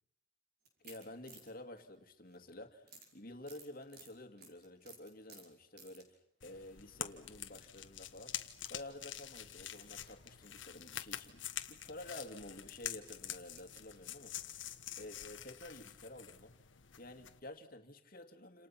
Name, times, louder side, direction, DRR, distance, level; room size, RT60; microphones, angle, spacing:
sound 1, 0.6-2.5 2.8-6.1 6.6-6.9 7.7-7.9 8.5-10.6 10.9-11.2 11.6-11.7 12.5-15.2 15.7-15.8 16.1-16.2, right 4 dB, 55° right, 5.5 m, -60 dB
voice 1, 0.8-8.4 8.7-14.6 15.0-16.5 17.0-18.7, left 1 dB, 50° left, 7 dB, 2.3 m, -51 dB
sound 2, 6.4-17.4, left 11 dB, 80° left, 1.5 m, -47 dB
29.0 x 27.5 x 5.9 m, 0.76 s
head